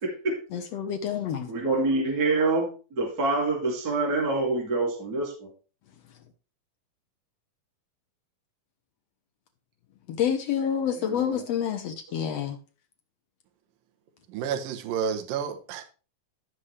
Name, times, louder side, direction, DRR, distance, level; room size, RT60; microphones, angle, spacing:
voice 1, 0.0-0.4 1.5-5.5 10.9-11.4 12.1-12.3, right 3 dB, 30° right, 2.5 m, -26 dB
voice 2, 0.5-1.5 10.1-12.6, left 8 dB, 85° left, 1.4 m, -28 dB
voice 3, 14.3-15.8, right 7 dB, 75° right, 2.7 m, -30 dB
16.0 x 5.6 x 3.3 m
omnidirectional pair, 4.2 m